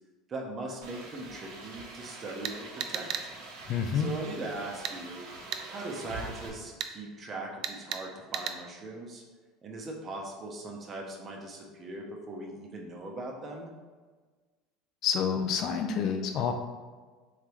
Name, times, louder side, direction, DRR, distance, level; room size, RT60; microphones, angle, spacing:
voice 1, 0.3-3.3 3.9-5.2 5.7-9.2 9.6-13.7, right 2 dB, 35° right, 0 dB, 0.9 m, -40 dB
sound 1, 0.8-6.5, right 3 dB, 70° right, 0.8 m, -45 dB
sound 2, 2.4-3.3 4.8-5.0 5.5-5.6 6.8-6.9 7.6-8.0 8.3-8.6, right 9 dB, 55° right, 0.3 m, -34 dB
voice 2, 3.7-4.1 15.0-16.5, left 7 dB, 55° left, 5 dB, 0.4 m, -28 dB
3.7 x 3.4 x 3.0 m, 1.4 s
supercardioid pair, 100°, 0 cm